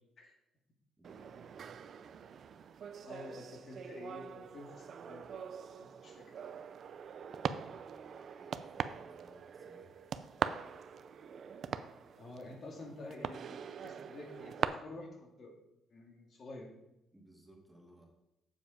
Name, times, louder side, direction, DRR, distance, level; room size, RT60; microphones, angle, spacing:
voice 1, 1.0-1.7 7.3-10.2 12.0-12.3 17.1-18.1, right 1 dB, 5° right, 0 dB, 2.2 m, -62 dB
sound 1, 1.0-14.6, right 7 dB, 60° right, 0.5 m, -42 dB
voice 2, 3.0-5.3 5.8-6.4 12.2-15.6 15.9-16.7, left 2 dB, 55° left, 1 dB, 2.0 m, -49 dB
7.2 x 7.2 x 5.0 m, 0.87 s
cardioid pair, 90°, 0 cm